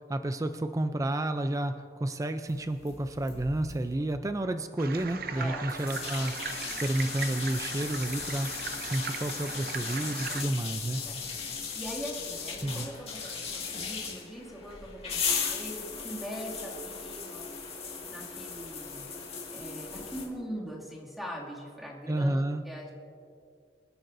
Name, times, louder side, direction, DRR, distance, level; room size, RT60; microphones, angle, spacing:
voice 1, 0.1-1.7 2.0-6.3 6.7-8.5 8.8-11.0 12.6-12.9 22.1-22.6, right 1 dB, 20° right, 8 dB, 0.4 m, -30 dB
sound 1, 2.5-3.9 5.0-20.3, left 5 dB, 35° left, 2.0 m, -37 dB
sound 2, 4.8-10.4, right 6 dB, 60° right, 0.7 m, -39 dB
voice 2, 5.3-5.7 11.0-11.2 11.5-17.6 18.1-19.0 19.5-22.9, equal, ahead, -5 dB, 2.3 m, -41 dB
27.5 x 10.0 x 2.6 m, 2.3 s
head